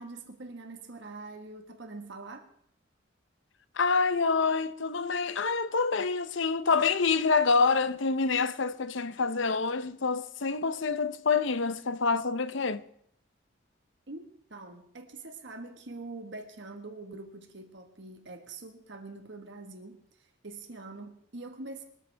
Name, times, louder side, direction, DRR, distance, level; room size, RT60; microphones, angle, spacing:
voice 1, 0.0-2.5 14.1-14.2 14.5-21.8, right 3 dB, 60° right, 1.5 m, -44 dB
voice 2, 3.8-12.8, left 4 dB, 65° left, 0.7 m, -27 dB
24.5 x 13.5 x 3.4 m
head